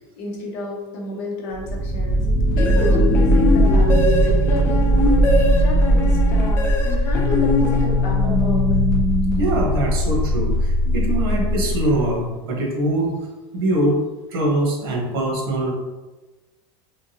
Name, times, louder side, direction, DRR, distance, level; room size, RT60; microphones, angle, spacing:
voice 1, 0.0-2.3 2.5-4.9 5.4-8.6 8.9-9.0, left 2 dB, 50° left, -1 dB, 1.1 m, -30 dB
sound 1, 1.5-12.2, equal, ahead, 1.2 m, -18 dB
sound 2, 2.6-8.4, left 2 dB, 20° left, 0.4 m, -24 dB
voice 2, 9.4-13.3 13.5-14.0 14.3-15.7, right 1 dB, 85° right, -1 dB, 1.3 m, -22 dB
3.8 x 3.3 x 2.8 m, 1.2 s
supercardioid pair, 170°, 12 cm